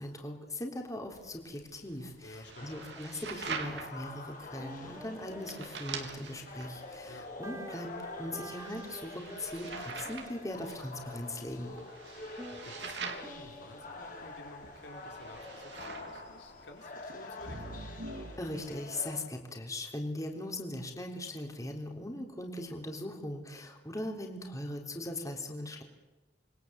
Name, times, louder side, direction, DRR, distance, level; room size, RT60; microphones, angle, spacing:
voice 1, 0.0-7.9 8.2-11.7 18.4-25.8, left 1 dB, 20° left, 2 dB, 3.7 m, -40 dB
sound 1, 1.1-18.6, right 4 dB, 80° right, 3.7 m, -45 dB
voice 2, 2.2-2.8 7.1-7.3 12.2-17.9, left 1 dB, 75° left, 3 dB, 3.9 m, -52 dB
sound 2, 2.5-19.2, left 2 dB, 50° left, 4.7 m, -47 dB
sound 3, 4.3-4.4 4.6-6.9 7.4-9.7 10.0-15.3, right 2 dB, 20° right, 2.3 m, -51 dB
28.5 x 22.0 x 8.3 m, 1.1 s
head